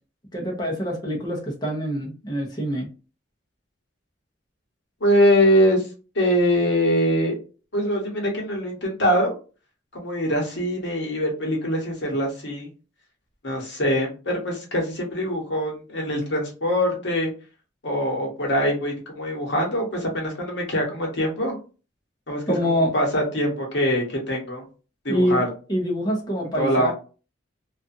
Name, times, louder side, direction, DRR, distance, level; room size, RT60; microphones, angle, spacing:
voice 1, 0.3-2.9 22.5-22.9 25.1-25.4 25.7-26.9, equal, 20° left, 0 dB, 0.7 m, -25 dB
voice 2, 5.0-5.9 6.1-7.4 7.7-9.4 9.9-12.7 13.4-17.3 17.8-21.6 22.3-24.6 25.0-25.5 26.6-26.9, equal, 65° left, 0 dB, 1.1 m, -23 dB
2.5 x 2.4 x 2.6 m, 0.35 s
head